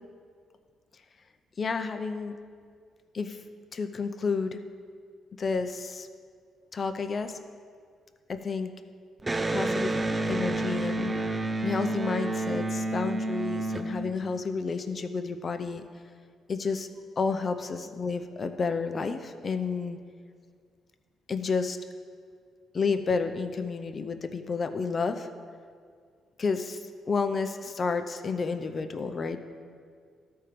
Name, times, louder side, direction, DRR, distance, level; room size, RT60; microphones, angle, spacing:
voice 1, 1.6-2.4 3.1-3.4 3.7-4.6 5.4-6.1 6.7-7.4 8.3-8.7 9.5-9.9 10.3-11.1 11.6-15.8 16.5-16.9 17.2-20.0 21.3-21.8 22.7-25.3 26.4-29.4, left 4 dB, 40° left, 8 dB, 0.6 m, -30 dB
Electric guitar, 9.2-14.7, right 2 dB, 20° right, 0.5 m, -30 dB
13.0 x 4.4 x 5.1 m, 2.1 s
cardioid pair, 90°, 0 cm